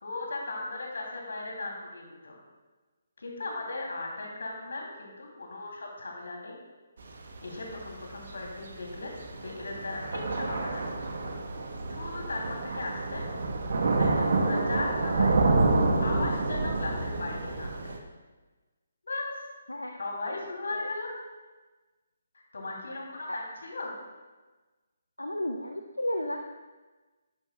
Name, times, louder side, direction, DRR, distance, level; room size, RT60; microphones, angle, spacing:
voice 1, 0.0-2.4 3.2-6.6 7.0-7.1 7.4-10.8 11.9-13.3 13.7-15.4 16.0-18.0 19.0-19.4 20.0-21.1 22.3-23.9, left 2 dB, 70° left, -1 dB, 2.7 m, -37 dB
Thunder / Rain, 7.0-18.0, right 3 dB, 60° right, 1.1 m, -28 dB
voice 2, 19.7-20.0 20.7-20.9 23.3-23.4 25.2-26.4, left 1 dB, 90° left, 5 dB, 0.6 m, -33 dB
11.0 x 10.5 x 2.3 m, 1.2 s
figure-of-eight pair, 145°, 0 cm